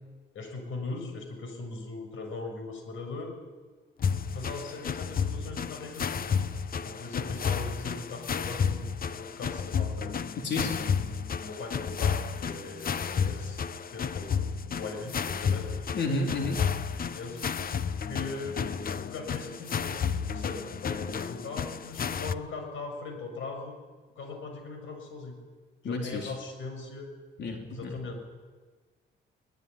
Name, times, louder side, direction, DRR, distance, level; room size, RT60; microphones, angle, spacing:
voice 1, 0.3-3.4 4.3-6.3 6.8-8.9 9.1-10.2 11.4-13.6 13.9-14.4 14.7-15.9 17.0-18.7 18.9-20.0 20.3-23.8 24.1-25.4 25.8-27.1 27.7-28.4, left 3 dB, 80° left, 5 dB, 6.9 m, -40 dB
sound 1, 4.0-22.3, left 6 dB, 45° left, 1.0 m, -32 dB
voice 2, 10.4-10.8 15.9-16.6 25.8-26.3 27.4-27.9, left 2 dB, 60° left, 2 dB, 4.1 m, -31 dB
22.5 x 21.0 x 9.8 m, 1.4 s
cardioid pair, 90°, 20 cm